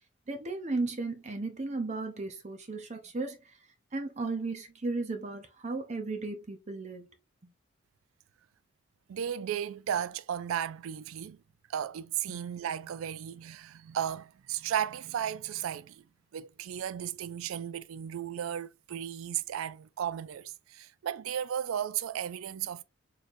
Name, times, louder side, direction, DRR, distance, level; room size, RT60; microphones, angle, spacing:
voice 1, 0.3-3.4 3.9-7.1 12.3-12.4, right 3 dB, 35° right, 0.6 m, -35 dB
voice 2, 9.1-11.4 11.7-16.0 16.3-22.8, right 9 dB, 85° right, 0.3 m, -35 dB
4.2 x 3.2 x 2.5 m
head